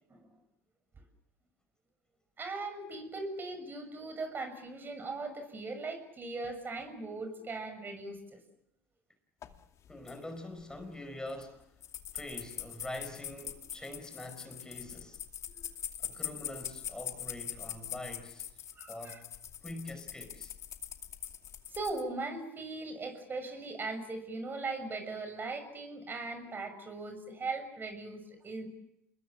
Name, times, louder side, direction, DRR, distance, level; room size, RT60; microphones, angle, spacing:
voice 1, 2.4-8.2 15.4-15.7 18.8-19.2 21.7-28.7, right 3 dB, 30° right, 6.6 m, -39 dB
sound 1, 9.4-9.6 9.8-10.2 10.6-10.9 11.3-11.4 11.8-22.0, left 10 dB, 45° left, 2.4 m, -42 dB
voice 2, 9.9-11.7 12.1-15.2 16.0-18.5 18.9-19.3 19.6-20.5, left 1 dB, 10° left, 5.2 m, -44 dB
28.5 x 21.5 x 7.5 m
hypercardioid pair, 85°, 7 cm